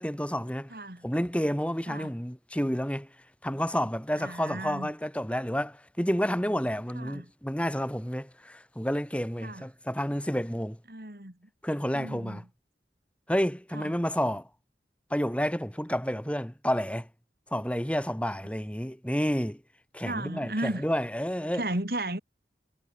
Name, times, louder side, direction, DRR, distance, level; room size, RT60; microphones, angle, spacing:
voice 1, 0.0-0.7 1.0-3.1 3.4-10.8 11.6-12.4 13.3-14.5 15.1-17.1 17.5-19.6 19.9-21.6, equal, 5° left, 4.6 m, -30 dB
voice 2, 0.7-1.1 1.9-2.1 4.2-4.9 6.9-7.3 9.4-9.6 10.9-11.5 11.9-12.4 13.7-14.0 20.0-20.8 21.5-22.2, right 1 dB, 55° right, 3.3 m, -35 dB
head